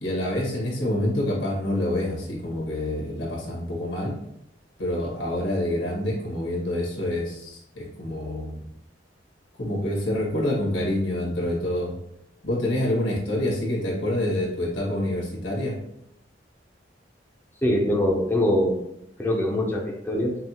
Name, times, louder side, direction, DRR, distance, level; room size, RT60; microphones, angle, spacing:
voice 1, 0.0-4.2 4.8-8.6 9.6-11.9 12.4-15.8, left 1 dB, 85° left, -3 dB, 1.5 m, -27 dB
voice 2, 17.6-18.9 19.2-20.4, left 1 dB, 10° left, -2 dB, 0.5 m, -23 dB
5.6 x 2.3 x 2.8 m, 0.78 s
head